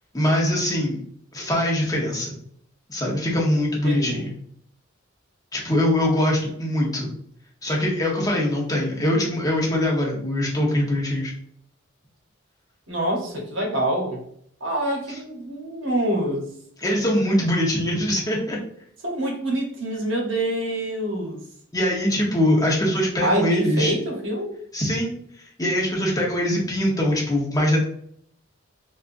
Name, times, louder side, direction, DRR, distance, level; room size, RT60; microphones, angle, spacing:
voice 1, 0.1-1.0 1.3-2.4 2.9-4.3 5.5-7.1 7.6-11.3 16.8-18.6 21.7-23.9 24.7-27.8, left 1 dB, 20° left, -3 dB, 0.9 m, -22 dB
voice 2, 3.8-4.3 12.9-14.2 14.6-16.5 19.0-21.4 23.2-24.5, right 1 dB, 65° right, 0 dB, 1.0 m, -26 dB
4.2 x 2.4 x 2.5 m, 0.65 s
head